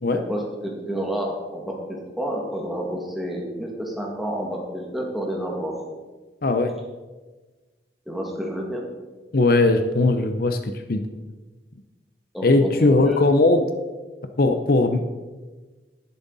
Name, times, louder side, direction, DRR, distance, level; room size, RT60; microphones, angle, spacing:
voice 1, 0.1-5.8 8.1-8.8 12.3-13.2, equal, ahead, -2 dB, 2.2 m, -29 dB
voice 2, 6.4-6.7 9.3-11.0 12.4-13.7 14.4-15.1, left 2 dB, 55° left, 7 dB, 0.7 m, -19 dB
11.0 x 11.0 x 4.1 m, 1.3 s
head